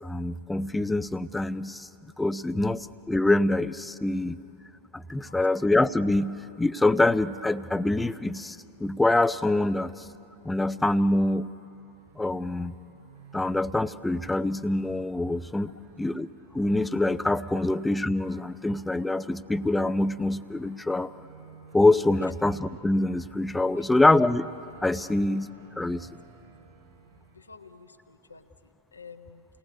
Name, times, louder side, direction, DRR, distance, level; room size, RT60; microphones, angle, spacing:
voice 1, 0.0-1.9 2.2-4.4 4.9-9.9 10.4-11.5 12.2-12.7 13.3-16.3 16.5-21.1 21.7-24.5 24.8-25.5 25.8-26.1, left 2 dB, 5° left, 14 dB, 0.6 m, -25 dB
sound 1, 10.1-27.4, right 6 dB, 55° right, 5.1 m, -55 dB
voice 2, 27.3-29.5, left 5 dB, 80° left, 7 dB, 1.3 m, -50 dB
29.0 x 19.0 x 9.6 m, 2.8 s
figure-of-eight pair, 90°, 0 cm